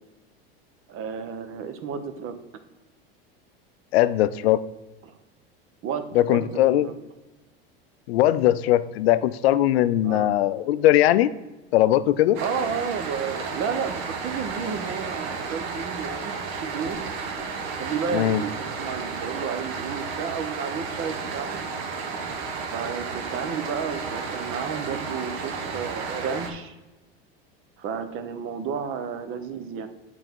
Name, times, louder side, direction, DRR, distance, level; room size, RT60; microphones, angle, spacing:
voice 1, 0.9-2.4 5.0-5.2 5.8-6.9 10.0-10.3 12.4-17.0 17.8-21.6 22.7-26.7 27.8-29.9, right 6 dB, 45° right, 9 dB, 0.9 m, -32 dB
voice 2, 3.9-4.6 6.2-6.9 8.1-11.3 11.7-12.4 18.1-18.4, left 13 dB, 80° left, 14 dB, 0.5 m, -20 dB
sound 1, 12.3-26.5, right 5 dB, 65° right, 1.2 m, -32 dB
7.8 x 4.0 x 4.4 m, 1.1 s
hypercardioid pair, 100°, 30 cm